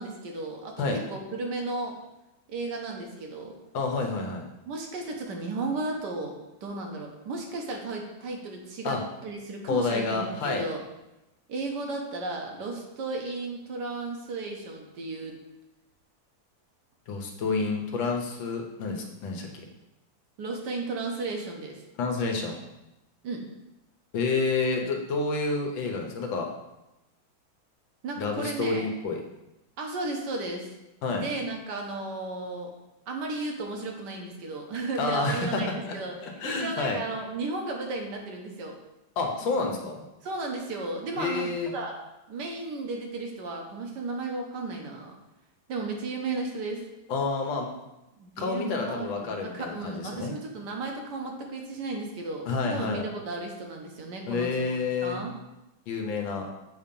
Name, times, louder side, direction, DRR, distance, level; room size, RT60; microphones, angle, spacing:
voice 1, 0.0-2.0 2.5-3.5 4.7-10.8 11.5-15.4 20.4-21.8 23.2-23.4 28.0-28.9 29.8-30.7 31.1-32.7 33.1-38.8 40.2-42.0 42.3-45.1 45.7-46.8 48.2-55.3, right 3 dB, 65° right, 1 dB, 1.4 m, -34 dB
voice 2, 3.7-4.4 8.8-9.0 9.7-10.7 17.1-19.5 22.0-22.6 24.1-26.5 28.2-29.2 31.0-31.2 35.0-36.0 36.2-37.0 39.2-40.0 41.2-41.7 47.1-47.7 48.4-50.3 52.5-53.0 54.3-55.2 55.9-56.5, left 4 dB, 80° left, 2 dB, 1.6 m, -29 dB
6.9 x 2.8 x 5.2 m, 0.95 s
omnidirectional pair, 2.1 m